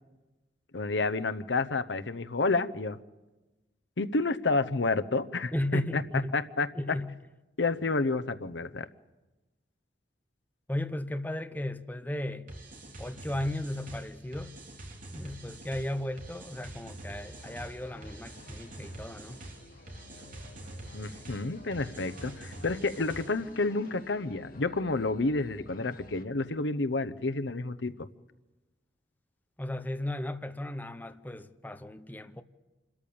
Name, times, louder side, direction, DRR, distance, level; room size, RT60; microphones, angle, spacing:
voice 1, 0.7-3.0 4.0-6.0 6.3-6.7 7.6-8.9 20.9-27.9, left 3 dB, 85° left, 0.8 m, -30 dB
voice 2, 5.5-6.3 6.7-7.1 10.7-12.5 13.0-14.5 15.1-19.4 29.6-32.4, left 1 dB, 10° left, 0.8 m, -35 dB
sound 1, 12.5-23.5, right 1 dB, 50° right, 3.3 m, -45 dB
sound 2, 17.2-26.2, left 2 dB, 55° left, 1.5 m, -52 dB
27.0 x 13.5 x 8.8 m
head